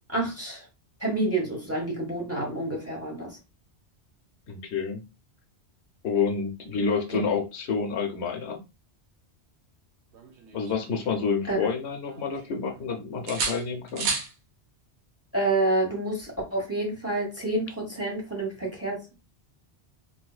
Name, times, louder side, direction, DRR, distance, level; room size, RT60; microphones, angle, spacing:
voice 1, 0.1-0.7 1.0-3.4 7.1-7.2 11.5-11.6 15.3-19.1, right 2 dB, 15° right, -1 dB, 1.0 m, -28 dB
voice 2, 4.5-5.0 6.0-8.6 10.5-14.2, left 5 dB, 75° left, 4 dB, 0.9 m, -28 dB
sound 1, 10.1-11.7 12.0-12.9 13.3-14.3 16.2-16.4, right 4 dB, 80° right, 1.0 m, -34 dB
3.6 x 2.7 x 2.3 m, 0.28 s
omnidirectional pair, 1.1 m